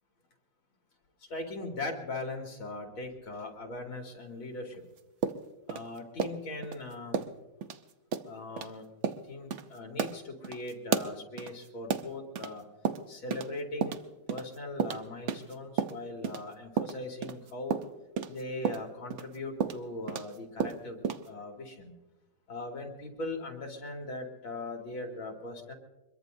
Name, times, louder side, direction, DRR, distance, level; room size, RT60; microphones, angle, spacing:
voice 1, 1.3-4.9 5.7-7.2 8.3-8.9 9.3-12.7 13.1-14.0 14.3-17.8 18.3-22.0 22.5-25.7, left 2 dB, 75° left, 1 dB, 3.3 m, -40 dB
sound 1, 5.2-6.8 7.1-7.4 7.6-7.8 8.1-8.3 8.6-8.7 9.0-9.2 9.5-9.6 10.0-12.5 12.8-13.5 13.8-16.4 16.8-20.3 20.6-21.3, right 7 dB, 65° right, 0.7 m, -32 dB
24.5 x 22.0 x 2.7 m, 1.0 s
omnidirectional pair, 2.3 m